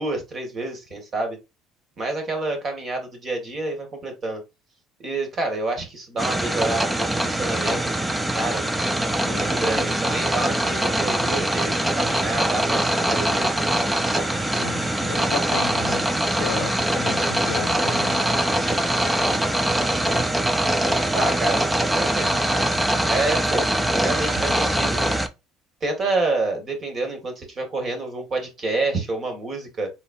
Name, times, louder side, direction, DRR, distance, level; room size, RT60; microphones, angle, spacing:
voice 1, 0.0-1.4 2.0-4.4 5.0-7.9 8.3-8.6 9.0-13.5 21.1-21.6 21.9-22.4 23.1-25.2 25.8-29.9, right 2 dB, 35° right, 2.0 m, -28 dB
sound 1, 6.2-25.3, right 1 dB, 10° right, 0.6 m, -23 dB
voice 2, 14.6-16.1 16.4-18.2, left 9 dB, 85° left, 0.6 m, -33 dB
4.2 x 3.8 x 2.6 m
cardioid pair, 115°, 0 cm